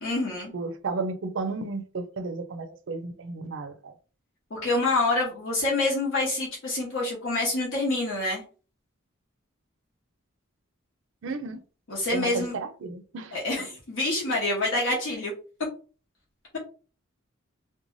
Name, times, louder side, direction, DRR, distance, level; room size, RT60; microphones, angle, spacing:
voice 1, 0.0-0.5 4.5-8.4 11.9-12.5 13.3-15.3, left 2 dB, 65° left, 0.8 m, -27 dB
voice 2, 0.5-3.9 11.2-11.6 12.1-13.7, right 3 dB, 65° right, 0.4 m, -33 dB
2.5 x 2.2 x 3.1 m
head